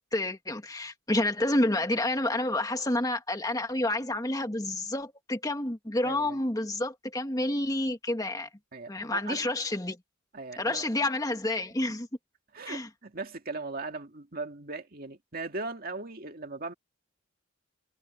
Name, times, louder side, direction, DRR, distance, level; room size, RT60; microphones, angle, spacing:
voice 1, 0.0-8.5 8.9-10.0 10.6-12.1 12.7-12.9, left 1 dB, 20° left, 1.8 m, -29 dB
voice 2, 6.0-6.4 8.7-9.5 10.3-10.8 12.5-16.7, right 3 dB, 45° right, 2.2 m, -38 dB
head